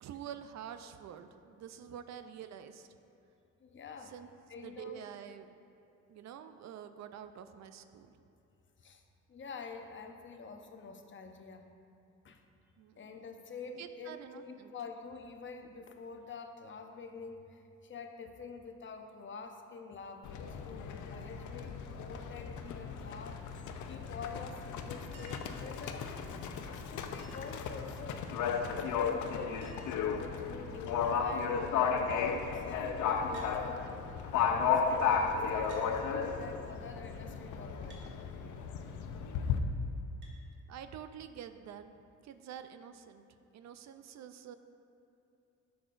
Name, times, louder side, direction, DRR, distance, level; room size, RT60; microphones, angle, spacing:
voice 1, 0.0-2.9 4.1-4.3 4.6-5.5 6.1-8.1 12.8-13.0 13.8-14.7 40.7-41.9 42.2-43.2 43.5-44.6, right 9 dB, 65° right, 9 dB, 0.5 m, -47 dB
voice 2, 3.6-4.1 4.5-5.0 8.8-9.0 9.3-11.7 12.2-12.4 13.0-26.1 26.7-33.9 34.4-38.0, left 5 dB, 40° left, 5 dB, 0.7 m, -47 dB
Livestock farm animals working animals, 20.2-39.6, left 6 dB, 80° left, 0.6 m, -34 dB
Chink clink, 25.1-25.6 27.2-27.6 29.0-29.1 29.3-29.4 29.6-30.1 30.8-31.2 33.3-33.6 34.6-34.7 35.7-35.9 37.9-38.1 40.2-40.4 41.8-41.9, right 3 dB, 90° right, 1.5 m, -56 dB
9.9 x 7.0 x 2.5 m, 2.8 s
cardioid pair, 90°, 30 cm